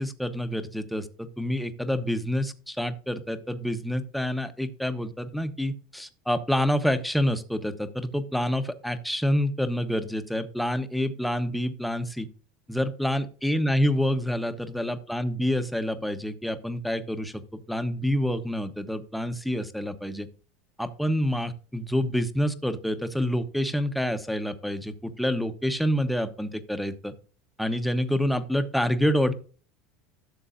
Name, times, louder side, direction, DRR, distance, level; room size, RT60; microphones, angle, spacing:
voice 1, 0.0-12.3 12.7-20.3 20.8-27.1 27.6-29.3, equal, ahead, 9 dB, 0.9 m, -27 dB
12.5 x 6.9 x 2.5 m, 0.39 s
supercardioid pair, 115°, 0 cm